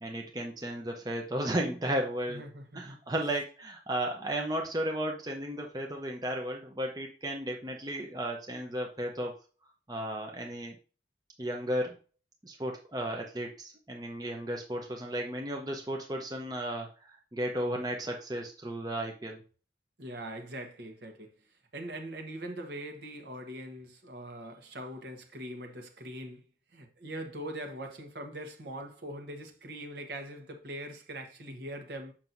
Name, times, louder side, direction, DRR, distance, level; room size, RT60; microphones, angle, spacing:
voice 1, 0.0-2.4 2.7-9.3 9.9-10.7 11.4-12.0 12.4-19.4, right 1 dB, 20° right, 0.7 m, -34 dB
voice 2, 2.3-3.2 20.0-21.3 21.7-26.4 26.7-32.1, right 1 dB, 60° right, 1.2 m, -42 dB
7.4 x 5.9 x 2.6 m
head